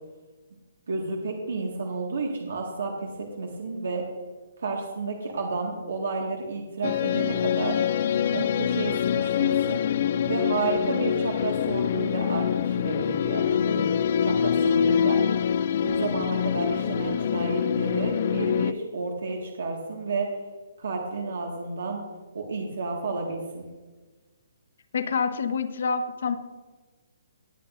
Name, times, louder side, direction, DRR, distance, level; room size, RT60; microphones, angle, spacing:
voice 1, 0.9-4.0 4.6-7.8 8.3-9.8 10.3-13.8 14.2-15.2 15.8-20.3 20.8-22.0 22.3-23.6, right 3 dB, 80° right, 0 dB, 1.7 m, -31 dB
sound 1, 6.8-18.7, left 8 dB, 40° left, 0.3 m, -25 dB
voice 2, 24.9-26.4, left 5 dB, 55° left, 9 dB, 0.9 m, -27 dB
18.5 x 8.3 x 2.5 m, 1.3 s
hypercardioid pair, 170°, 0 cm